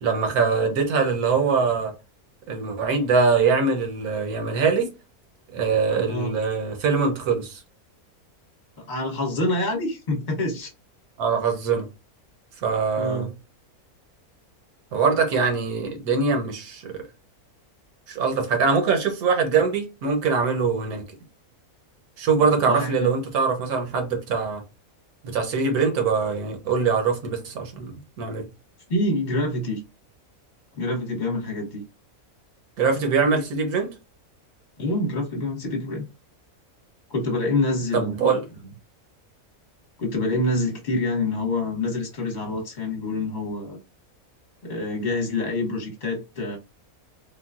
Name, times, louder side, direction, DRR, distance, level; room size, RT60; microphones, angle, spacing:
voice 1, 0.0-1.9 2.5-4.9 5.5-7.6 11.2-11.9 12.6-13.3 14.9-16.9 18.1-21.0 22.2-24.6 25.2-28.5 32.8-33.9 37.9-38.4, right 5 dB, 80° right, 1.4 m, -23 dB
voice 2, 8.8-10.7 13.0-13.3 22.4-23.1 28.9-29.8 30.7-31.8 34.8-36.0 37.1-38.2 40.0-43.8 44.6-46.6, left 2 dB, 35° left, 1.1 m, -26 dB
3.7 x 2.2 x 2.4 m
omnidirectional pair, 1.5 m